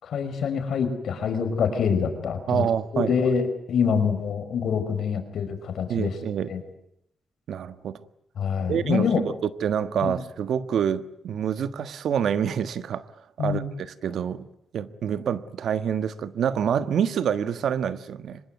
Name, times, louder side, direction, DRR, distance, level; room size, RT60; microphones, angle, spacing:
voice 1, 0.0-2.6 2.9-6.2 6.5-6.6 8.4-9.2 10.0-10.1 13.4-13.7, left 6 dB, 75° left, 8 dB, 5.4 m, -25 dB
voice 2, 2.5-3.1 5.9-6.5 7.5-8.0 8.7-13.0 13.4-14.4 14.7-18.4, right 8 dB, 75° right, 12 dB, 1.5 m, -27 dB
25.0 x 21.5 x 9.4 m, 0.75 s
cardioid pair, 95°, 0 cm